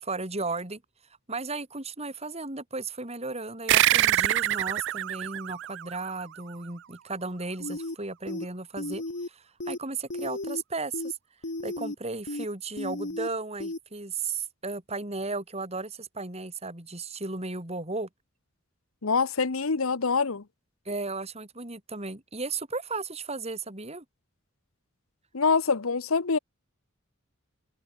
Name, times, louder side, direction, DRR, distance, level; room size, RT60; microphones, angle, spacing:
voice 1, 0.0-0.8 1.3-11.2 11.6-18.1 20.8-24.0, right 3 dB, 30° right, 3.5 m, -35 dB
sound 1, 3.7-6.7, right 14 dB, 60° right, 0.4 m, -25 dB
sound 2, 7.6-7.9 8.3-8.4 8.8-9.3 9.6-9.8 10.1-10.6 10.9-11.1 11.4-11.9 12.3-12.4 12.8-13.3 13.6-13.8, left 2 dB, 60° left, 1.6 m, -34 dB
voice 2, 19.0-20.4 25.3-26.4, left 4 dB, 80° left, 1.0 m, -25 dB
head